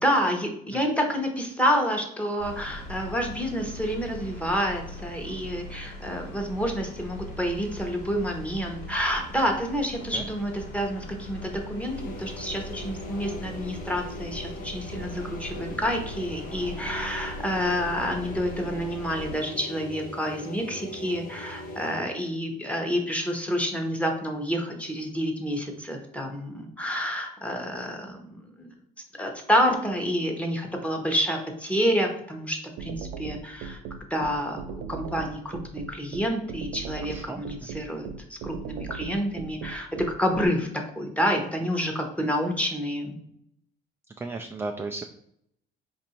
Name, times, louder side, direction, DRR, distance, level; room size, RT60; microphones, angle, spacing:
voice 1, 0.0-28.7 29.2-33.8 34.1-39.9 40.2-40.7 41.0-43.1, equal, 10° left, 2 dB, 1.0 m, -28 dB
sound 1, 2.4-19.4, equal, 90° left, 1.7 m, -40 dB
sound 2, 11.7-22.1, left 1 dB, 55° left, 1.0 m, -40 dB
sound 3, 32.8-40.5, right 6 dB, 90° right, 0.5 m, -37 dB
voice 2, 37.1-37.4 44.2-45.0, right 3 dB, 15° right, 5 dB, 0.3 m, -34 dB
4.6 x 2.6 x 4.3 m, 0.73 s
cardioid pair, 110°, 17 cm